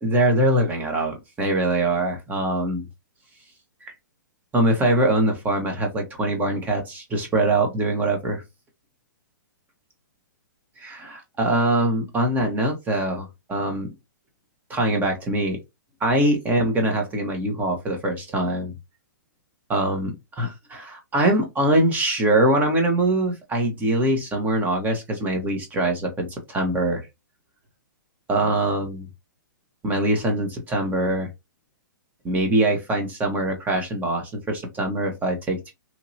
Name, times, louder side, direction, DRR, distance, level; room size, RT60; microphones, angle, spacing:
voice 1, 0.0-2.9 3.8-3.9 4.5-8.4 10.8-13.9 14.7-15.6 16.0-18.7 19.7-27.0 28.3-29.1 29.8-31.3 32.2-35.7, right 1 dB, 15° right, 1.0 m, -23 dB
3.0 x 2.8 x 2.7 m
hypercardioid pair, 135°, 11 cm